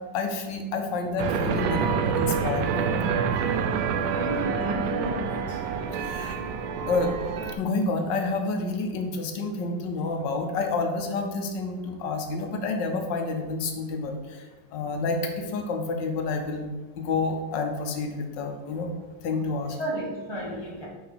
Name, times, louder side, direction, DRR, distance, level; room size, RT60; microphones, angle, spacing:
voice 1, 0.1-3.0 5.9-6.4 6.9-7.2 7.6-16.7 17.0-18.9 19.2-19.8, left 3 dB, 80° left, 5 dB, 1.4 m, -29 dB
sound 1, 1.2-7.6, right 6 dB, 90° right, 1.3 m, -27 dB
voice 2, 4.1-5.6 19.8-20.9, equal, 30° right, -4 dB, 0.5 m, -32 dB
5.4 x 3.9 x 4.7 m, 1.2 s
omnidirectional pair, 1.9 m